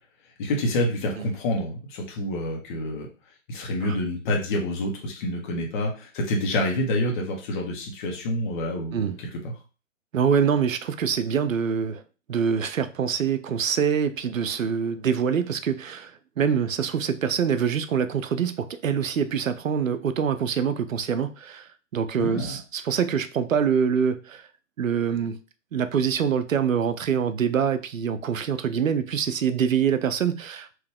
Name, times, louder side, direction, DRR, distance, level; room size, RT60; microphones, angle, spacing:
voice 1, 0.4-3.1 3.5-9.5 22.2-22.6, left 1 dB, 40° left, 1.6 m, -27 dB
voice 2, 10.1-12.0 12.3-24.5 24.8-25.4 25.7-30.7, right 7 dB, 85° right, 0.7 m, -25 dB
4.7 x 3.2 x 3.5 m
hypercardioid pair, 140°, 39 cm